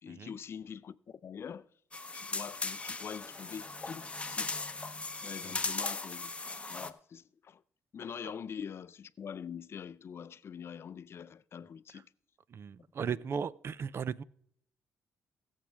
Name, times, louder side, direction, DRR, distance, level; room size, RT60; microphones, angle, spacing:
voice 1, 0.0-1.7 2.1-4.5 5.2-6.3 6.7-7.6 7.9-12.1 13.0-13.2, left 7 dB, 50° left, 0.5 m, -44 dB
sound 1, 1.9-6.9, left 3 dB, 20° left, 0.8 m, -38 dB
voice 2, 12.5-14.2, right 7 dB, 50° right, 0.5 m, -36 dB
21.0 x 7.4 x 3.4 m
cardioid pair, 75°, 5 cm